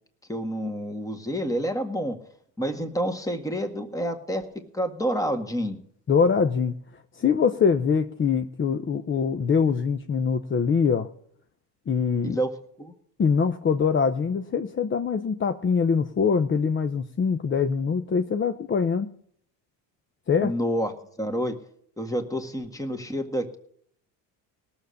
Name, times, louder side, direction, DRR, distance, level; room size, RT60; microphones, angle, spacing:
voice 1, 0.3-2.2 2.6-4.5 4.7-5.8 12.2-13.0 20.4-20.9 21.2-21.5 22.0-23.6, equal, 5° left, 6 dB, 1.8 m, -28 dB
voice 2, 6.1-6.7 7.1-11.1 11.9-12.4 13.2-19.1 20.3-20.5, left 6 dB, 25° left, 9 dB, 0.7 m, -23 dB
18.0 x 7.1 x 6.5 m, 0.65 s
supercardioid pair, 95°, 46 cm